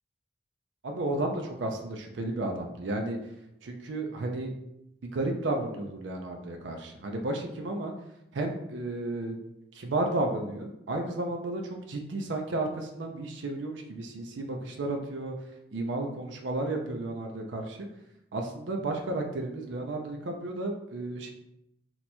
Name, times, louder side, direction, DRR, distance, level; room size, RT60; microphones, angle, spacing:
voice 1, 0.8-3.2 3.6-4.5 5.0-7.9 8.3-9.4 9.7-15.3 15.7-17.9 18.3-21.3, right 2 dB, 75° right, 3 dB, 0.4 m, -33 dB
2.9 x 2.2 x 4.1 m, 0.82 s
head